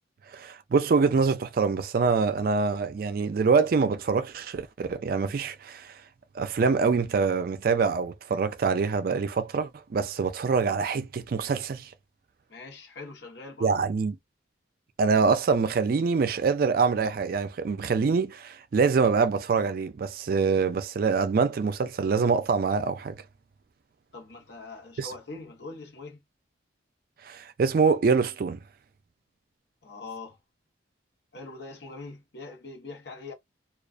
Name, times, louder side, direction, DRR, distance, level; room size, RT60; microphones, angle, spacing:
voice 1, 0.3-6.0 6.3-11.9 13.6-14.2 15.0-23.2 25.0-25.1 27.2-28.6, right 5 dB, 50° right, 0.3 m, -25 dB
voice 2, 12.5-13.7 24.1-26.2 29.8-30.4 31.3-33.3, left 3 dB, 60° left, 1.0 m, -42 dB
2.3 x 2.3 x 2.4 m
head